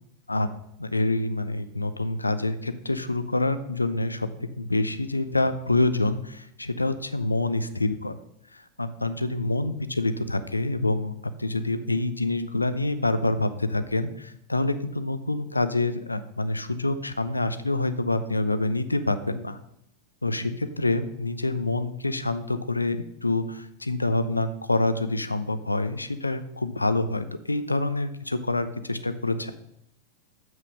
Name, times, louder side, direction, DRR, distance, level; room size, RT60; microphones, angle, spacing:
voice 1, 0.8-8.1 8.5-11.1 11.4-19.6 20.2-29.5, left 2 dB, 80° left, 12 dB, 0.6 m, -26 dB
7.6 x 6.2 x 6.3 m, 0.76 s
figure-of-eight pair, 90°, 0 cm